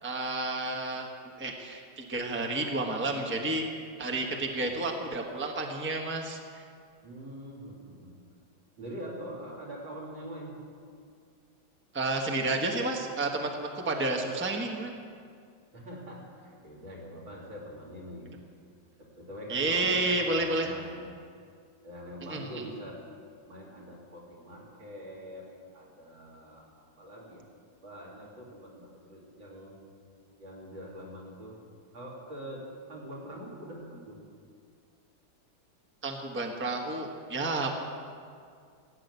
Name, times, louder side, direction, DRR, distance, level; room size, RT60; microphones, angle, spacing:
voice 1, 0.0-1.1 1.4-3.6 4.0-6.6 11.9-14.9 19.5-20.7 22.3-22.5 36.0-37.7, right 2 dB, 10° right, 2 dB, 1.0 m, -30 dB
voice 2, 7.0-8.2 8.8-10.6 15.7-18.3 19.0-21.1 21.8-23.0 23.5-25.5 25.7-26.6 27.0-27.5 27.8-29.7 30.4-31.6 31.9-34.2, equal, 85° right, -4 dB, 3.9 m, -44 dB
16.5 x 9.2 x 8.2 m, 2.2 s
omnidirectional pair, 2.0 m